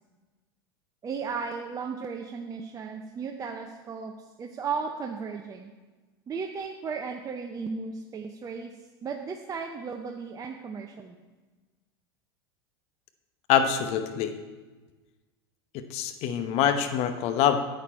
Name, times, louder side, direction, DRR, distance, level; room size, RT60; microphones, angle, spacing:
voice 1, 1.0-5.7 6.3-8.7 9.0-11.2, right 5 dB, 25° right, 4 dB, 0.7 m, -35 dB
voice 2, 13.5-14.3 15.7-17.6, left 9 dB, 50° left, 8 dB, 1.0 m, -25 dB
10.0 x 8.4 x 4.3 m, 1.3 s
hypercardioid pair, 90°, 13 cm